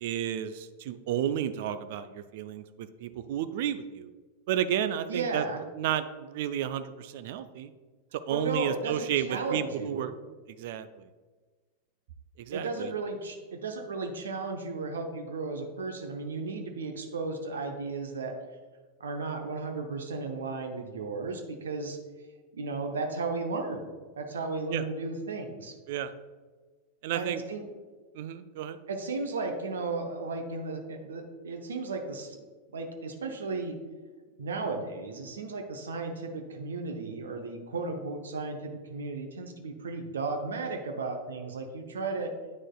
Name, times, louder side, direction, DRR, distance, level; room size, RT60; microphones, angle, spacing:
voice 1, 0.0-4.1 4.5-5.4 5.7-7.7 8.1-10.1 10.6-11.1 12.4-12.9 24.7-24.8 25.9-26.1 27.0-27.4 28.1-28.8, right 10 dB, 50° right, 12 dB, 0.3 m, -32 dB
voice 2, 5.1-5.6 8.3-10.1 12.5-18.3 19.0-22.0 22.5-23.9 24.2-25.7 27.1-27.6 28.9-32.4 32.7-33.8 34.4-42.3, right 3 dB, 65° right, 4 dB, 0.7 m, -34 dB
9.3 x 6.2 x 2.3 m, 1.4 s
figure-of-eight pair, 90°, 0 cm